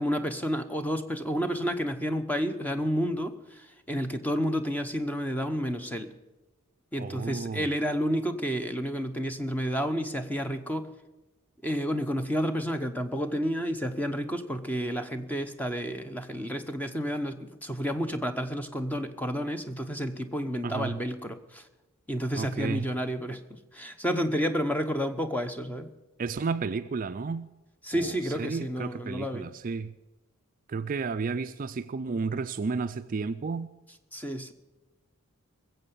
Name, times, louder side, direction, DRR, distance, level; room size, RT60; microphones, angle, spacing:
voice 1, 0.0-6.1 6.9-10.9 11.6-21.6 22.1-25.9 27.8-29.5 34.1-34.5, equal, 5° left, 7 dB, 0.8 m, -30 dB
voice 2, 7.0-7.7 20.6-21.0 22.4-22.9 26.2-27.5 27.9-29.9 30.7-33.7, right 4 dB, 40° right, 11 dB, 0.4 m, -32 dB
20.5 x 7.9 x 6.9 m, 1.1 s
head